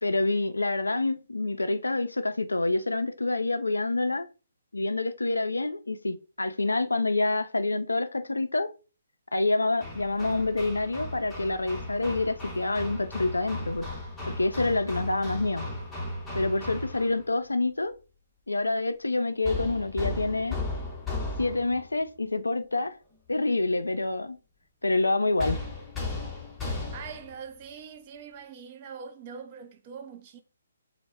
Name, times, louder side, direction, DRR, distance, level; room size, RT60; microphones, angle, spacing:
voice 1, 0.0-4.3 4.7-8.7 9.3-13.8 14.4-15.6 16.3-17.9 18.5-20.6 21.4-23.0 23.3-24.4 24.8-25.6, left 2 dB, 85° left, 0.3 m, -27 dB
Hammer, 9.8-17.2 19.4-21.9 25.4-27.3, left 2 dB, 10° left, 0.6 m, -35 dB
voice 2, 26.9-30.4, right 6 dB, 35° right, 0.4 m, -43 dB
2.0 x 2.0 x 3.3 m
figure-of-eight pair, 140°, 0 cm